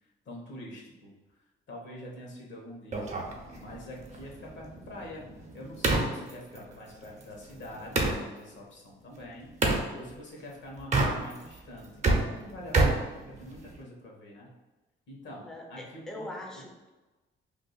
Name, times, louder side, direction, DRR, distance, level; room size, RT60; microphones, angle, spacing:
voice 1, 0.0-1.1 1.7-3.1 3.6-14.5 15.1-16.6, left 1 dB, 70° left, -1 dB, 1.1 m, -45 dB
sound 1, 2.9-8.2 9.6-9.9 10.8-11.5 11.8-13.8, right 2 dB, 35° right, 0.7 m, -29 dB
voice 2, 15.4-16.9, left 1 dB, 5° left, 0 dB, 0.5 m, -42 dB
2.6 x 2.4 x 4.0 m, 1.1 s
cardioid pair, 90°, 20 cm